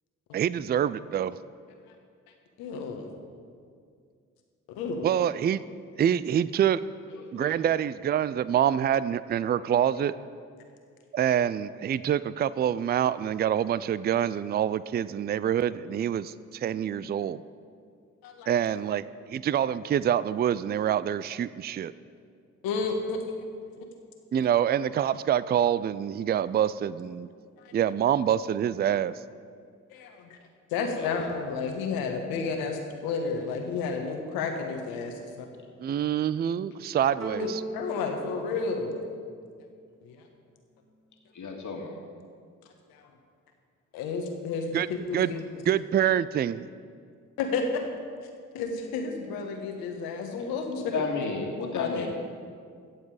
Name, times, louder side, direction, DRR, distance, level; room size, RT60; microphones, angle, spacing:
voice 1, 0.3-1.3 5.0-5.6 6.0-6.8 7.3-10.1 11.1-17.4 18.5-19.0 19.3-21.9 24.3-27.3 27.7-29.1 35.8-37.6 44.7-44.9 45.1-45.3 45.7-46.7, right 9 dB, 30° right, 17 dB, 0.4 m, -26 dB
voice 2, 2.6-3.1 4.7-5.1 18.2-18.6 22.6-23.2 24.3-24.4 27.6-27.7 29.9-30.4 30.7-35.3 37.4-37.5 37.7-39.0 40.0-40.2 42.9-43.1 43.9-44.8 45.1-45.4 47.4-47.8 48.5-51.0 51.7-52.1, left 4 dB, 80° left, 4 dB, 1.4 m, -31 dB
voice 3, 7.1-7.6 31.0-31.3 41.3-42.0 50.8-52.1, left 4 dB, 55° left, 1 dB, 2.0 m, -33 dB
sound 1, 37.2-39.8, right 1 dB, 50° right, 2.6 m, -38 dB
15.5 x 7.3 x 4.9 m, 2.2 s
hypercardioid pair, 45°, 35 cm